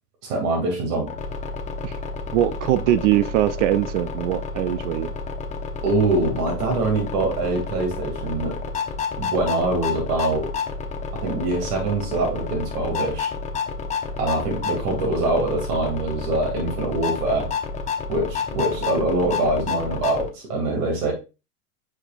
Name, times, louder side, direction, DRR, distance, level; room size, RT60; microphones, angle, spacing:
voice 1, 0.2-1.1 5.8-8.6 9.2-10.5 11.2-13.3 14.2-17.5 18.1-21.1, right 2 dB, 70° right, 2.5 m, -24 dB
sound 1, 1.1-20.3, left 5 dB, 15° left, 0.8 m, -30 dB
voice 2, 2.3-5.1, right 13 dB, 50° right, 0.5 m, -22 dB
8.3 x 5.1 x 2.5 m
hypercardioid pair, 120°, 47 cm